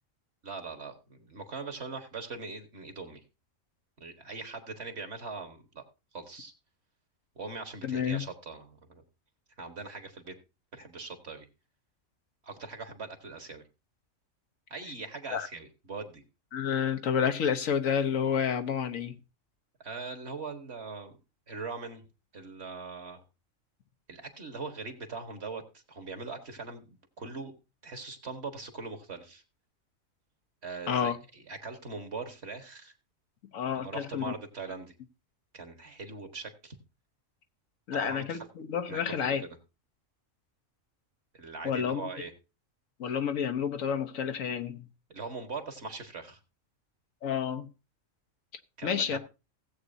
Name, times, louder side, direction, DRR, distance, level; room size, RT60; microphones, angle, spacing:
voice 1, 0.4-3.2 4.0-5.8 6.1-6.5 7.3-9.0 9.6-10.3 10.7-11.5 12.4-13.6 14.7-16.2 19.8-21.2 21.5-22.0 22.3-23.2 24.1-27.5 27.8-29.4 30.6-32.9 33.7-34.9 35.5-36.7 37.9-38.5 38.9-39.5 41.3-42.3 45.1-46.4 48.8-49.2, right 4 dB, 55° right, 1.8 m, -41 dB
voice 2, 7.8-8.2 15.3-15.5 16.5-19.2 30.9-31.2 33.5-34.3 37.9-39.4 41.6-42.1 43.0-44.9 47.2-47.7 48.8-49.2, left 7 dB, 90° left, 1.3 m, -30 dB
16.5 x 8.1 x 2.6 m
omnidirectional pair, 1.4 m